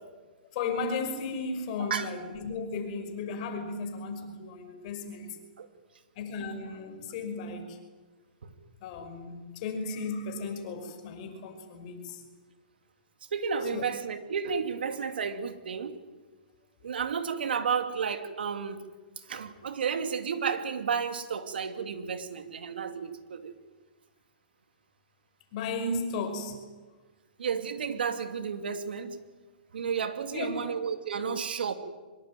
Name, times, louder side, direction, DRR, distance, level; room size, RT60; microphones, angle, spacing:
voice 1, 0.5-5.3 6.2-7.8 8.8-12.2 13.7-13.9 25.5-26.7 30.3-30.7, left 3 dB, 45° left, 5.6 m, -35 dB
voice 2, 1.8-2.1 5.6-5.7 8.4-8.5 13.3-16.0 16.8-18.8 19.3-23.5 27.4-29.2 29.7-31.7, right 6 dB, 85° right, 2.9 m, -32 dB
25.0 x 22.0 x 9.3 m
hypercardioid pair, 145°, 5 cm